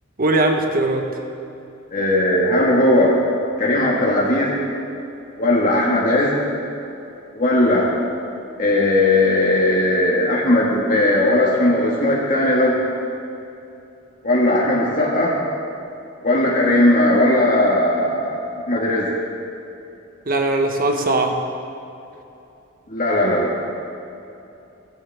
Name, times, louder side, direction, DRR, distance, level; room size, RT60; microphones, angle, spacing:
voice 1, 0.2-1.1 20.3-21.4, right 2 dB, 45° right, 4 dB, 1.3 m, -19 dB
voice 2, 1.9-3.2 3.6-4.5 5.4-6.4 7.3-7.9 8.6-12.7 14.2-15.4 16.2-19.1 22.9-23.6, left 1 dB, 40° left, -4 dB, 1.8 m, -18 dB
16.0 x 15.0 x 3.5 m, 2.8 s
head